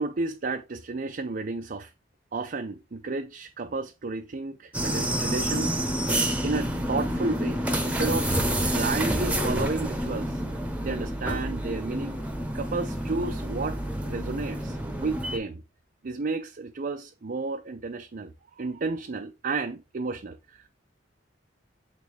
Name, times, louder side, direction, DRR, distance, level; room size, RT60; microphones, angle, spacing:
voice 1, 0.0-1.9 2.3-5.8 6.4-10.4 10.8-12.2 12.5-13.8 14.0-15.6 16.0-20.7, right 3 dB, 50° right, 0.5 m, -32 dB
sound 1, 4.7-15.4, equal, 10° right, 1.0 m, -28 dB
8.5 x 3.8 x 3.3 m
head